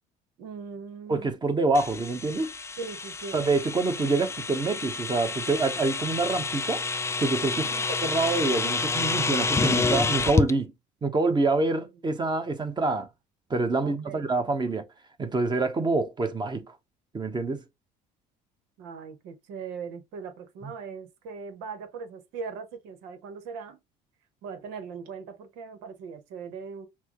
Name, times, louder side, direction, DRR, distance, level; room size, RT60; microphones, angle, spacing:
voice 1, 0.4-1.3 2.8-3.4 7.5-7.9 13.8-14.3 18.8-23.8 24.4-26.9, right 5 dB, 85° right, 1.2 m, -40 dB
voice 2, 1.1-2.5 3.3-6.8 7.2-7.7 8.0-10.7 11.0-13.1 13.5-14.8 15.2-16.8 17.1-17.6 20.6-20.7, right 3 dB, 25° right, 1.1 m, -26 dB
sound 1, 1.7-10.5, left 4 dB, 15° left, 0.4 m, -29 dB
5.9 x 2.3 x 3.0 m
supercardioid pair, 80°, 16 cm